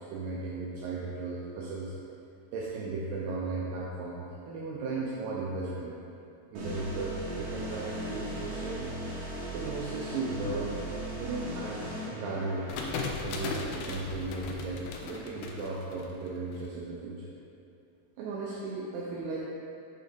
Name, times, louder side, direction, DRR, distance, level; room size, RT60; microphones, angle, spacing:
voice 1, 0.1-1.9 2.5-5.9 6.5-8.9 9.5-10.8 11.2-12.8 13.2-17.3 18.2-19.4, right 3 dB, 85° right, -4 dB, 2.0 m, -36 dB
sound 1, 6.6-13.0, equal, 65° right, 2.7 m, -38 dB
sound 2, 12.7-16.6, left 4 dB, 80° left, 2.1 m, -37 dB
8.3 x 3.6 x 3.8 m, 2.7 s
omnidirectional pair, 4.6 m